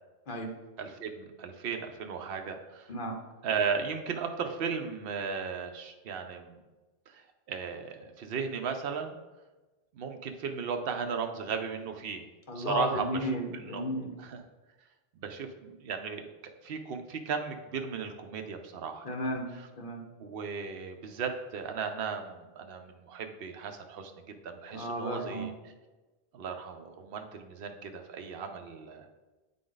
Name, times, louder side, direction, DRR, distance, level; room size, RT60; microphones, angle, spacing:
voice 1, 0.8-2.9 3.4-6.6 7.1-7.2 7.5-9.2 9.9-12.2 12.5-13.9 14.2-14.4 15.1-16.3 16.6-19.1 19.6-19.7 20.2-25.5 26.3-29.1, right 6 dB, 70° right, 5 dB, 0.8 m, -36 dB
voice 2, 12.5-14.1 19.0-20.0 24.7-25.5, equal, 55° left, 1 dB, 1.2 m, -34 dB
8.4 x 3.8 x 3.8 m, 1.2 s
omnidirectional pair, 1.0 m